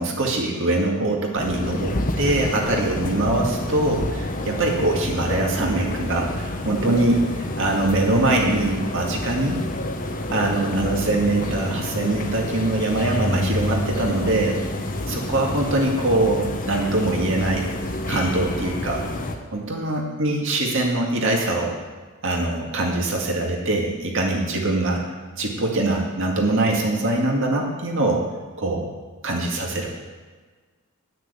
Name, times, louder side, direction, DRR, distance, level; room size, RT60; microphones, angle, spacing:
voice 1, 0.0-9.6 10.3-14.6 15.1-17.7 18.1-19.1 19.5-21.8 22.2-25.0 25.4-28.2 28.6-28.9 29.2-29.9, right 2 dB, 60° right, 0 dB, 2.1 m, -23 dB
sound 1, 1.4-19.4, left 1 dB, 40° left, 1.0 m, -28 dB
10.5 x 6.5 x 8.1 m, 1.4 s
head